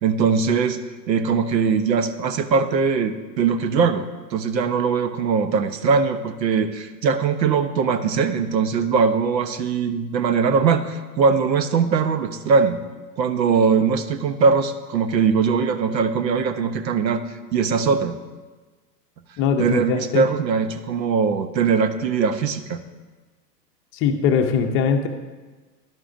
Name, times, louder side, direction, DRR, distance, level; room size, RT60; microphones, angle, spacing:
voice 1, 0.0-0.8 1.1-4.1 4.3-12.8 13.2-17.2 17.5-18.2 19.6-22.8, right 5 dB, 90° right, 11 dB, 0.8 m, -21 dB
voice 2, 19.4-20.3 23.9-25.1, left 6 dB, 25° left, 6 dB, 0.6 m, -21 dB
11.0 x 10.5 x 2.6 m, 1.3 s
hypercardioid pair, 120°, 49 cm